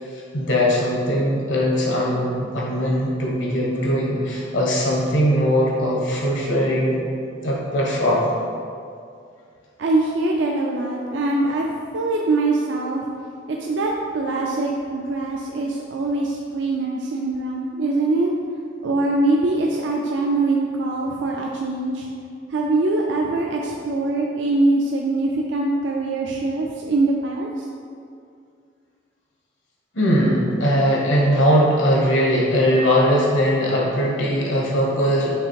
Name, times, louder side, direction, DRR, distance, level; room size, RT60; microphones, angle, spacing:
voice 1, 0.0-7.0 7.4-8.3 29.9-35.3, equal, 75° left, -3 dB, 1.3 m, -20 dB
voice 2, 9.8-11.7 11.9-13.1 13.5-18.3 18.8-22.1 22.5-27.6, right 2 dB, 70° right, -1 dB, 0.4 m, -23 dB
5.9 x 3.4 x 4.7 m, 2.3 s
head